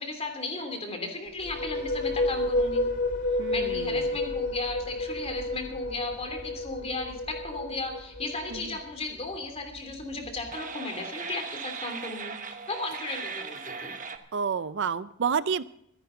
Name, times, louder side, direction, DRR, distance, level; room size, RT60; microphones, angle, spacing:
voice 1, 0.0-2.9 3.5-13.9, left 3 dB, 30° left, 5 dB, 2.9 m, -35 dB
sound 1, 1.3-8.9, left 2 dB, 55° left, 2.4 m, -30 dB
voice 2, 3.4-4.1 8.5-8.8 14.3-15.6, right 6 dB, 60° right, 16 dB, 0.5 m, -30 dB
sound 2, 3.5-14.2, right 5 dB, 40° right, 1.1 m, -42 dB
24.5 x 10.5 x 3.9 m, 0.74 s
head